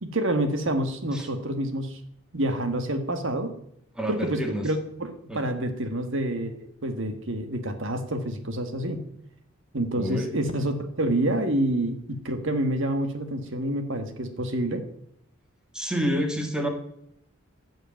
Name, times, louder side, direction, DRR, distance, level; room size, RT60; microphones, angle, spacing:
voice 1, 0.0-2.0 2.3-3.5 4.1-9.0 9.7-14.8, right 1 dB, 65° right, 8 dB, 1.6 m, -28 dB
voice 2, 4.0-4.7 5.3-5.4 10.0-10.3 15.7-16.7, equal, 5° right, 3 dB, 2.0 m, -28 dB
14.0 x 6.4 x 9.1 m, 0.72 s
head